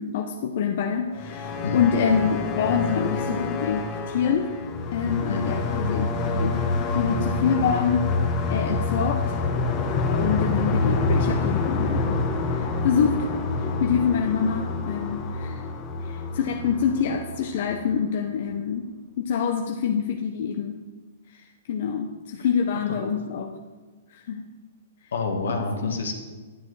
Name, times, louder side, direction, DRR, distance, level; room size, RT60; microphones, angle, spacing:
voice 1, 0.0-4.5 4.9-6.6 6.9-8.1 8.5-9.4 10.1-12.2 12.5-13.3 13.6-15.6 16.0-18.9 19.2-20.8 21.3-23.5 24.1-24.5 25.8-26.0, left 7 dB, 60° left, 3 dB, 0.7 m, -26 dB
sound 1, 1.1-17.9, left 3 dB, 30° left, 1.1 m, -27 dB
voice 2, 25.1-26.1, left 3 dB, 80° left, 3 dB, 1.5 m, -28 dB
10.0 x 9.4 x 3.3 m, 1.3 s
hypercardioid pair, 140°, 0 cm